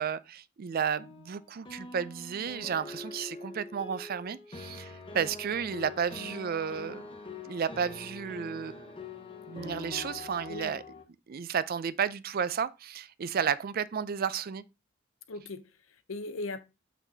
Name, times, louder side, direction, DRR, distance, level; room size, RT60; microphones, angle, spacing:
voice 1, 0.0-7.0 7.4-8.9 9.5-10.8 11.3-14.6, right 7 dB, 45° right, 0.4 m, -32 dB
sound 1, 1.0-11.0, left 3 dB, 25° left, 0.9 m, -44 dB
voice 2, 15.3-16.6, left 2 dB, 75° left, 0.7 m, -39 dB
7.1 x 5.9 x 2.7 m
head